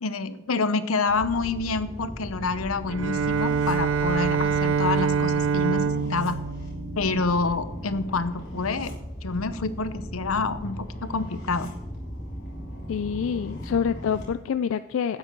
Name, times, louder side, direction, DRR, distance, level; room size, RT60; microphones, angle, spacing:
voice 1, 0.0-6.4 7.0-8.9 9.2-11.7, left 4 dB, 90° left, 13 dB, 0.8 m, -27 dB
sound 1, 1.1-14.2, equal, 50° left, 3.4 m, -37 dB
Bowed string instrument, 2.9-7.8, right 6 dB, 70° right, 0.5 m, -26 dB
voice 2, 12.9-15.2, left 7 dB, 70° left, 12 dB, 0.3 m, -27 dB
12.5 x 9.1 x 4.5 m, 1.0 s
head